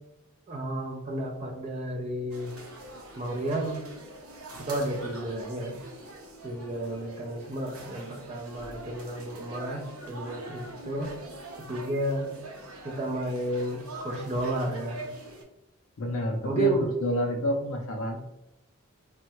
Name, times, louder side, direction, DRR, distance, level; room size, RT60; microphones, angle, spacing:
voice 1, 0.5-2.5 3.2-3.8 4.6-5.8 6.4-11.1 11.7-12.3 12.8-15.0 16.4-16.9, right 1 dB, 30° right, 2 dB, 0.5 m, -31 dB
sound 1, 2.3-15.4, right 2 dB, 75° right, 0.6 m, -43 dB
voice 2, 16.0-16.8 17.0-18.2, left 1 dB, 70° left, 1 dB, 0.5 m, -28 dB
3.4 x 2.1 x 2.9 m, 0.90 s
head